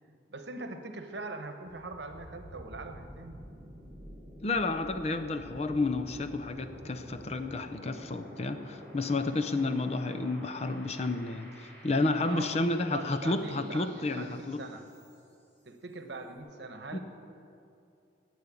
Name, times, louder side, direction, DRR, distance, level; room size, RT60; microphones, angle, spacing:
voice 1, 0.3-3.4 12.2-14.8 15.7-17.0, right 3 dB, 70° right, 7 dB, 1.0 m, -42 dB
sound 1, 1.6-15.4, equal, 10° left, 3.3 m, -50 dB
voice 2, 4.4-14.6 16.9-17.0, left 2 dB, 35° left, 9 dB, 0.5 m, -31 dB
10.5 x 8.0 x 8.3 m, 2.6 s
head